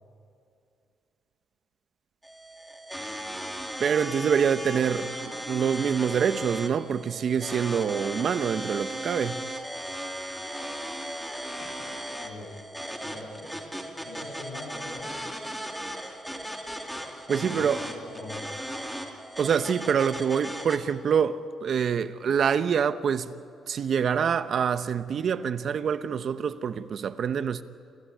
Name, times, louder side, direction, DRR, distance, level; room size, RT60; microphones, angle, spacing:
sound 1, 2.2-20.8, equal, ahead, 2.8 m, -37 dB
voice 1, 3.8-9.4 17.3-17.8 19.4-23.3 23.7-27.6, right 7 dB, 55° right, 1.0 m, -26 dB
voice 2, 12.2-12.6 13.0-13.5 14.0-15.1 17.3-18.5, left 2 dB, 80° left, 6.5 m, -42 dB
28.0 x 16.0 x 9.3 m
cardioid pair, 90°, 0 cm